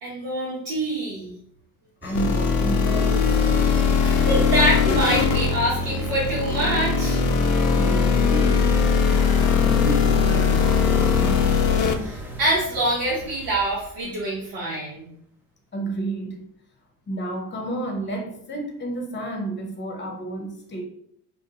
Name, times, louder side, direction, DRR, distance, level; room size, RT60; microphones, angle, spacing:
voice 1, 0.0-1.3 4.0-7.2 12.0-15.1, right 1 dB, 75° right, -7 dB, 1.0 m, -25 dB
voice 2, 2.0-3.3 7.8-11.5 15.7-16.4 17.1-20.8, right 2 dB, 25° left, 1 dB, 0.8 m, -31 dB
sound 1, 2.0-14.3, right 1 dB, 5° right, 0.3 m, -35 dB
sound 2, 2.2-11.9, left 6 dB, 70° left, 0.5 m, -20 dB
2.3 x 2.3 x 2.8 m, 0.67 s
hypercardioid pair, 65°, 48 cm